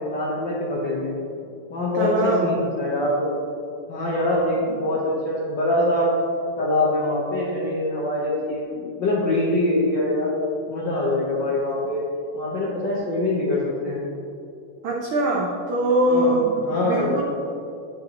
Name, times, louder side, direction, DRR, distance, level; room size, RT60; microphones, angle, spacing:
voice 1, 0.0-1.2 1.7-3.4 3.9-6.1 6.6-10.3 10.7-12.1 12.3-14.0 16.1-16.3 16.6-17.2, left 1 dB, 70° left, -6 dB, 1.1 m, -24 dB
voice 2, 1.9-2.5 14.8-17.2, right 1 dB, 85° right, -2 dB, 1.1 m, -22 dB
10.5 x 5.8 x 2.9 m, 2.5 s
omnidirectional pair, 3.4 m